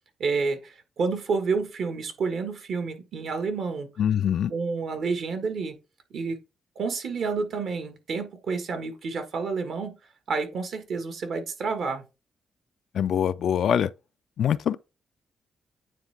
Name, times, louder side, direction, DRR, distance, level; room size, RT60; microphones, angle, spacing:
voice 1, 0.2-3.9 4.5-5.7 6.1-6.4 6.7-9.9 10.3-12.0, right 4 dB, 70° right, 1.4 m, -29 dB
voice 2, 4.0-4.5 12.9-13.9 14.4-14.8, left 9 dB, 70° left, 0.3 m, -23 dB
9.2 x 3.5 x 3.3 m
cardioid pair, 85°, 0 cm